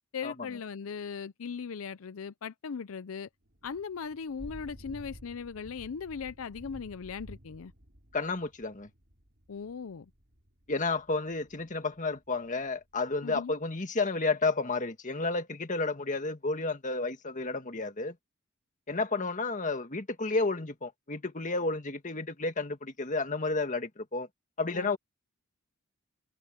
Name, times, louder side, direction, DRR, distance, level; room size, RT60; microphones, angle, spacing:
voice 1, 0.1-3.3 3.6-7.7 9.5-10.1 13.2-13.5 24.7-25.0, left 6 dB, 75° left, 0.5 m, -38 dB
Thunder / Rain, 3.4-13.0, equal, 50° right, 5.5 m, -52 dB
voice 2, 8.1-8.9 10.7-18.1 18.9-24.3 24.6-25.0, left 3 dB, 35° left, 1.8 m, -31 dB
head